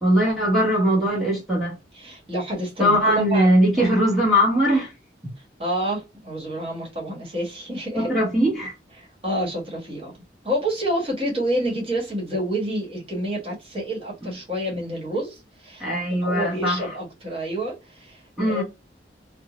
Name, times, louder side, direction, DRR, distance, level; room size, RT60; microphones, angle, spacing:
voice 1, 0.0-1.8 2.8-4.9 7.9-8.7 15.8-16.9 18.4-18.6, equal, ahead, 1.1 m, -20 dB
voice 2, 1.9-3.9 5.6-8.1 9.0-10.1 10.4-18.6, right 1 dB, 30° right, 1.2 m, -28 dB
2.6 x 2.0 x 2.8 m
head